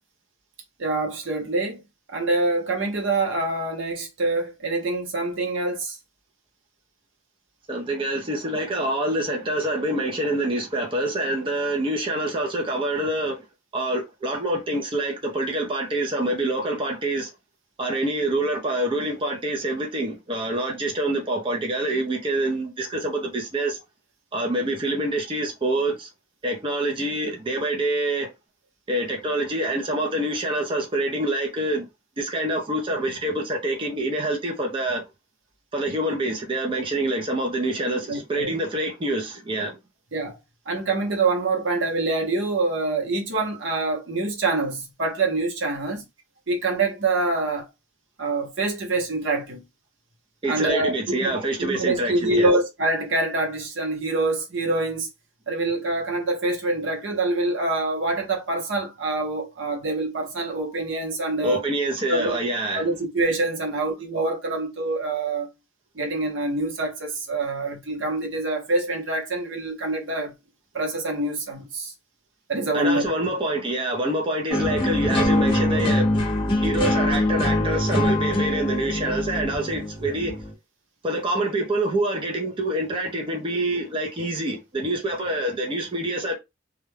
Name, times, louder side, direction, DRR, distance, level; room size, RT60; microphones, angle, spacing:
voice 1, 0.8-1.8 2.1-6.0 38.1-38.5 40.1-40.3 40.7-46.0 46.5-47.7 48.2-49.6 50.5-55.1 55.5-61.6 62.1-62.3 62.7-65.5 65.9-70.3 70.7-71.9 72.5-73.1, right 2 dB, 80° right, 0.9 m, -25 dB
voice 2, 7.7-13.4 13.7-17.3 17.8-23.8 24.3-26.1 26.4-28.3 28.9-31.9 32.2-35.0 35.7-39.8 50.4-52.5 61.4-62.9 72.7-76.1 76.6-80.4 81.0-86.3, right 1 dB, 25° right, 0.5 m, -26 dB
sound 1, 74.5-80.5, left 1 dB, 30° left, 0.9 m, -23 dB
2.3 x 2.2 x 3.2 m
head